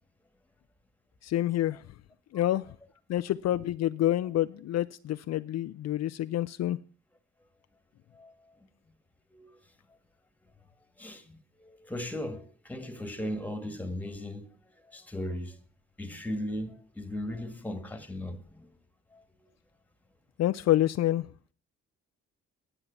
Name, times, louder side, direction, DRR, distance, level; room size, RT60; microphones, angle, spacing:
voice 1, 1.2-1.8 2.3-2.7 3.1-6.8 20.4-21.3, left 13 dB, 60° left, 0.5 m, -27 dB
voice 2, 8.1-8.5 9.3-9.6 11.0-14.5 14.9-15.6 16.0-18.7 19.1-19.2, left 1 dB, 5° left, 1.8 m, -37 dB
9.9 x 8.8 x 7.0 m
cardioid pair, 90°, 30 cm